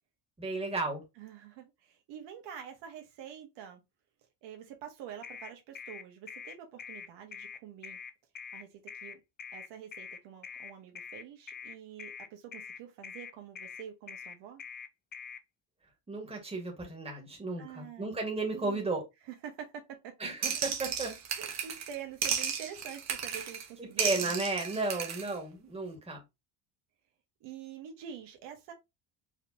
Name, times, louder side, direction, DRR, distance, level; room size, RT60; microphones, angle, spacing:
voice 1, 0.4-1.0 16.1-19.0 20.2-21.2 23.8-26.2, right 3 dB, 15° right, 1.9 m, -34 dB
voice 2, 1.2-3.8 4.4-8.0 8.5-9.2 9.5-14.6 17.6-18.1 18.5-18.9 19.2-20.1 21.4-24.4 27.4-28.7, right 9 dB, 75° right, 1.5 m, -46 dB
sound 1, 5.2-15.4, left 7 dB, 25° left, 0.4 m, -44 dB
sound 2, 20.4-22.0 22.2-23.7 24.0-25.3, right 7 dB, 40° right, 1.1 m, -34 dB
4.8 x 3.4 x 2.8 m
cardioid pair, 120°, 43 cm